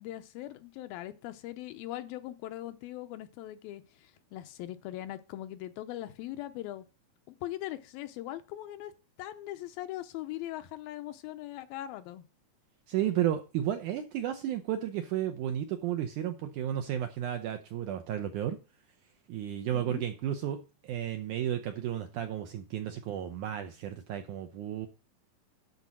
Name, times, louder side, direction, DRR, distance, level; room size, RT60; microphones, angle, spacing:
voice 1, 0.0-6.8 7.3-8.9 9.2-12.2 19.7-20.0, left 14 dB, 80° left, 2.5 m, -40 dB
voice 2, 12.9-18.6 19.3-24.9, right 11 dB, 75° right, 1.8 m, -33 dB
12.0 x 4.2 x 6.1 m
omnidirectional pair, 4.3 m